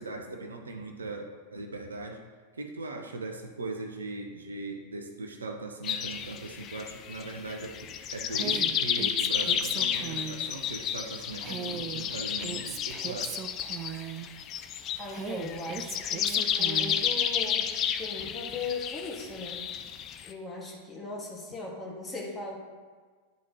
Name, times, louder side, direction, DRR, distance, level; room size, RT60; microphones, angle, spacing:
voice 1, 0.0-2.2 2.5-13.5, right 2 dB, 75° right, 4 dB, 0.7 m, -39 dB
sound 1, 5.8-20.3, left 9 dB, 35° left, 0.4 m, -31 dB
Female speech woman speaking, 8.3-10.5 11.4-14.3 15.1-17.0, right 8 dB, 30° right, 0.4 m, -39 dB
voice 2, 15.0-17.7 18.0-19.6 20.2-22.6, left 3 dB, 15° left, -3 dB, 1.7 m, -38 dB
10.5 x 4.1 x 3.0 m, 1.5 s
figure-of-eight pair, 90°, 0 cm